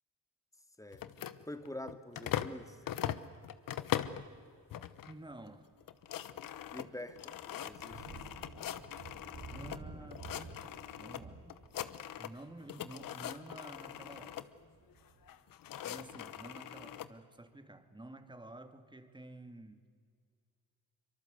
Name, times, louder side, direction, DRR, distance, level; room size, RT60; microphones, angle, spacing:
sound 1, 0.9-2.6 2.9-4.3 4.7-5.1 5.5-5.6 5.8-9.8 10.1-11.2 11.5-12.4 12.7-14.5 15.3-17.1, left 11 dB, 75° left, 1.1 m, -41 dB
voice 1, 1.5-2.8 6.7-8.1, left 1 dB, 10° left, 9 dB, 2.2 m, -46 dB
Thunder, 4.9-5.1 5.5-16.1, right 3 dB, 60° right, 7.4 m, -53 dB
voice 2, 5.1-5.7 9.5-11.4 12.2-14.5 15.8-19.8, right 1 dB, 15° right, 8 dB, 2.3 m, -51 dB
24.0 x 23.5 x 8.1 m, 2.1 s
cardioid pair, 70°, 34 cm